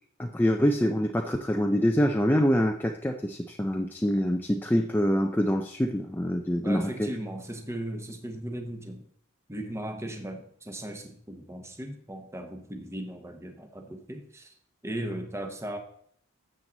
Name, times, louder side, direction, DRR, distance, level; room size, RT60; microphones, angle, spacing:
voice 1, 0.2-7.1, equal, 10° left, 4 dB, 0.5 m, -25 dB
voice 2, 6.6-9.1 9.5-14.5 14.8-15.8, right 1 dB, 15° right, 5 dB, 1.0 m, -37 dB
12.0 x 7.7 x 3.9 m, 0.63 s
head